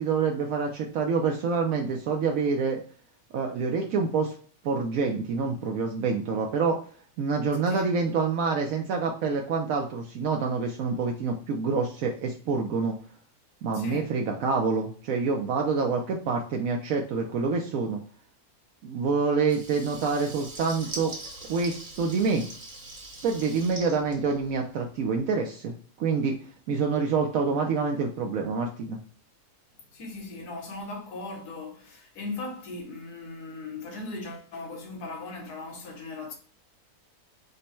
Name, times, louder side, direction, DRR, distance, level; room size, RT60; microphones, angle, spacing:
voice 1, 0.0-2.8 3.3-4.4 4.6-6.8 7.2-13.0 13.6-18.0 18.8-21.1 21.5-22.4 23.2-25.7 26.0-26.4 26.7-29.0, right 4 dB, 70° right, 0.9 m, -27 dB
voice 2, 13.7-14.1 29.9-36.3, left 2 dB, 90° left, 1.5 m, -38 dB
Water tap faucet / Liquid, 19.4-24.9, right 2 dB, 30° right, 0.9 m, -42 dB
5.2 x 2.1 x 4.3 m
omnidirectional pair, 1.6 m